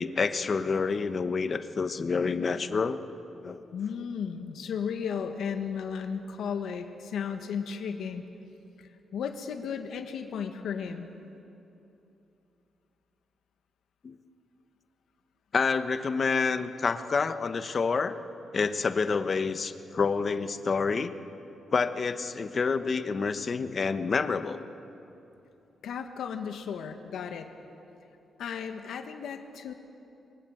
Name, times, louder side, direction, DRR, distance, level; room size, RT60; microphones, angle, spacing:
voice 1, 0.0-3.0 3.4-3.6 14.0-14.1 15.5-18.2 18.5-21.1 21.7-24.6, left 5 dB, 40° left, 10 dB, 1.1 m, -28 dB
voice 2, 3.7-8.2 8.8-11.1 25.8-27.5 28.4-29.7, left 7 dB, 80° left, 5 dB, 1.5 m, -34 dB
27.0 x 22.5 x 7.9 m, 2.9 s
cardioid pair, 125°, 0 cm